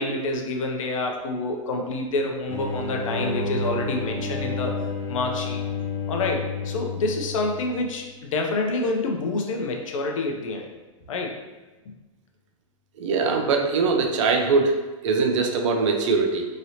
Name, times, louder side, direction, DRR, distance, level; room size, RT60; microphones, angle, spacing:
voice 1, 0.0-4.7 5.1-5.6 6.1-10.7 11.1-11.3, left 2 dB, 70° left, 2 dB, 0.6 m, -27 dB
sound 1, 2.5-7.9, left 3 dB, 10° left, 0.6 m, -30 dB
voice 2, 13.0-14.7 15.0-16.5, right 4 dB, 65° right, 3 dB, 0.6 m, -22 dB
3.0 x 2.7 x 2.7 m, 1.2 s
hypercardioid pair, 130°, 17 cm